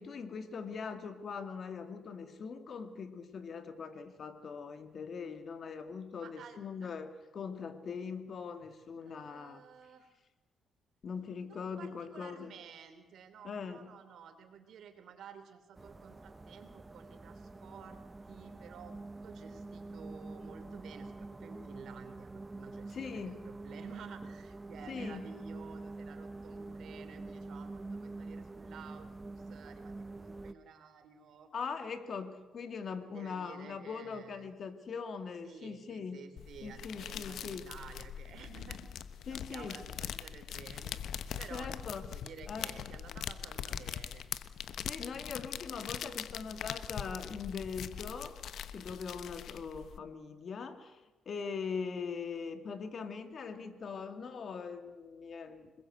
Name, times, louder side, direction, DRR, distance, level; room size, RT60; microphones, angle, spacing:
voice 1, 0.0-9.6 11.0-12.5 13.4-14.0 22.9-23.4 24.9-25.2 31.5-36.2 36.6-37.6 39.3-39.8 41.5-42.0 42.5-42.9 44.8-48.4 48.7-55.7, left 5 dB, 50° left, 8 dB, 2.6 m, -41 dB
voice 2, 6.2-6.9 9.0-10.1 11.4-18.0 18.3-31.5 33.1-34.5 35.4-38.9 39.3-40.9 41.4-41.8 42.1-44.3, right 6 dB, 70° right, 8 dB, 3.5 m, -53 dB
sound 1, 15.8-30.5, right 3 dB, 20° right, 0.9 m, -46 dB
sound 2, 36.4-50.0, left 9 dB, 70° left, 1.1 m, -42 dB
26.0 x 21.0 x 8.1 m, 1.1 s
cardioid pair, 90°, 0 cm